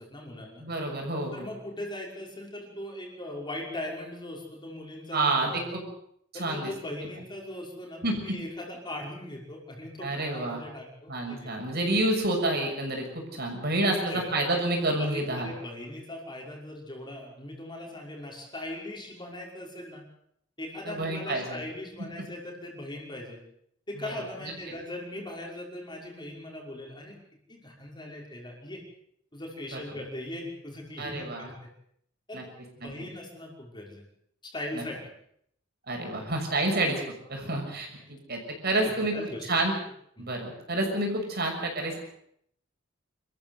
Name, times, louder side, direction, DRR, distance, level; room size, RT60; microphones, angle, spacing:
voice 1, 0.0-0.6 1.3-5.6 6.3-11.5 13.9-14.2 15.0-20.0 20.6-23.4 23.9-27.2 27.5-28.8 29.3-31.7 32.3-32.5 32.7-34.0 34.4-35.0 38.7-39.5 40.2-40.3, left 1 dB, 25° left, 0 dB, 5.7 m, -39 dB
voice 2, 0.6-1.5 5.1-5.8 6.4-6.7 8.0-8.4 10.0-10.6 11.1-15.5 20.8-21.6 24.0-24.1 24.4-24.5 29.7-29.8 31.0-31.5 32.3-32.4 32.8-32.9 34.7-34.8 35.9-37.0 37.3-39.1 39.5-39.7 40.2-42.0, right 2 dB, 50° right, 2 dB, 6.5 m, -29 dB
27.0 x 14.0 x 8.1 m, 0.70 s
head